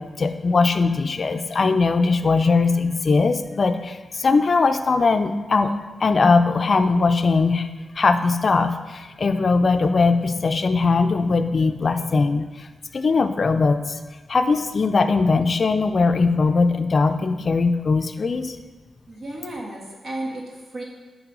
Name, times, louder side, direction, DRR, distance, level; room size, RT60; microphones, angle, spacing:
voice 1, 0.0-5.7 6.0-7.7 8.0-12.7 12.9-14.0 14.3-18.6, left 4 dB, 45° left, 7 dB, 0.4 m, -20 dB
voice 2, 19.1-20.8, right 1 dB, 60° right, -3 dB, 1.4 m, -33 dB
8.9 x 3.3 x 6.1 m, 1.3 s
wide cardioid pair, 115°, 0 cm